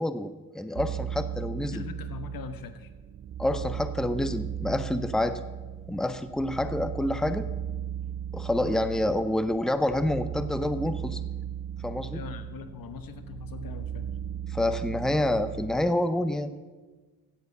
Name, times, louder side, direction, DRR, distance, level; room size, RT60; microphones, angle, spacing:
voice 1, 0.0-1.8 3.4-5.4 5.9-7.5 8.3-11.2 11.8-12.2 14.5-16.5, left 1 dB, ahead, 11 dB, 0.8 m, -28 dB
sound 1, 0.8-15.9, right 9 dB, 40° right, 0.4 m, -36 dB
voice 2, 1.7-2.9 12.1-14.1, left 6 dB, 70° left, 10 dB, 1.2 m, -41 dB
16.0 x 7.2 x 5.4 m, 1.3 s
supercardioid pair, 50°, 36 cm